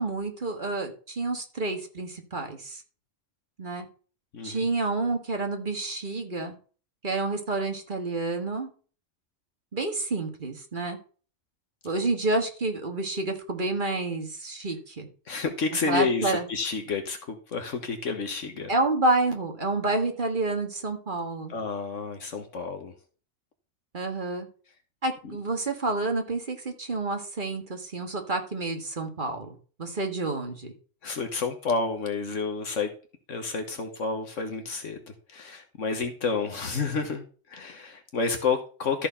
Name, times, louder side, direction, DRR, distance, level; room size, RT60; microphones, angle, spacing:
voice 1, 0.0-2.8 3.6-3.9 4.4-6.5 7.0-8.7 9.7-11.0 11.8-15.1 15.9-16.5 18.7-21.5 23.9-24.5 25.0-30.7, right 2 dB, 40° right, 4 dB, 1.8 m, -29 dB
voice 2, 4.3-4.7 15.3-18.7 21.5-22.9 25.2-25.3 31.0-32.9 33.3-35.0 35.3-37.2 37.5-39.1, left 4 dB, 75° left, 5 dB, 1.6 m, -30 dB
13.5 x 4.6 x 5.6 m, 0.39 s
omnidirectional pair, 1.3 m